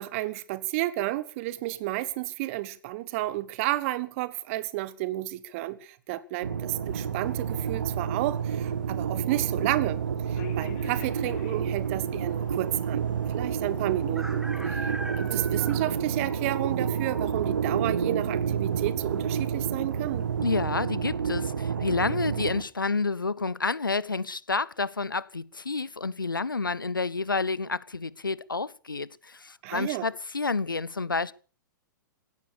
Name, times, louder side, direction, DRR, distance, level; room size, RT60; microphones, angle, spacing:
voice 1, 0.0-14.9 15.2-20.3 29.6-30.1, right 17 dB, 40° right, 1.4 m, -31 dB
sound 1, 6.4-22.6, right 7 dB, 65° right, 1.6 m, -29 dB
sound 2, 6.8-20.8, right 1 dB, 5° right, 2.8 m, -47 dB
sound 3, 10.3-16.6, left 6 dB, 45° left, 3.3 m, -48 dB
voice 2, 20.4-31.3, left 4 dB, 80° left, 0.8 m, -29 dB
16.5 x 12.0 x 7.0 m
figure-of-eight pair, 105°, 11 cm